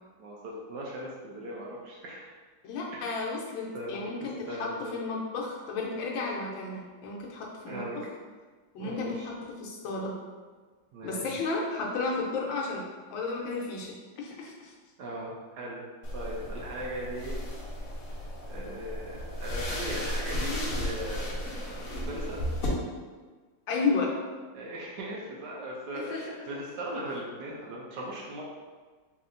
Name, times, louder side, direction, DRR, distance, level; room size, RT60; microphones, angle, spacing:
voice 1, 0.2-2.3 2.9-3.1 3.7-5.0 7.6-8.0 8.8-9.3 10.9-11.5 15.0-15.8 16.1-17.3 18.5-22.4 24.5-28.4, right 1 dB, 70° right, -3 dB, 1.1 m, -38 dB
voice 2, 2.6-8.0 8.7-10.1 11.0-12.8 13.1-14.7 23.7-24.1 25.9-26.2, left 3 dB, 85° left, -2 dB, 1.4 m, -33 dB
sound 1, 16.0-22.7, left 1 dB, 60° left, 0.9 m, -35 dB
4.2 x 2.7 x 2.5 m, 1.4 s
omnidirectional pair, 2.1 m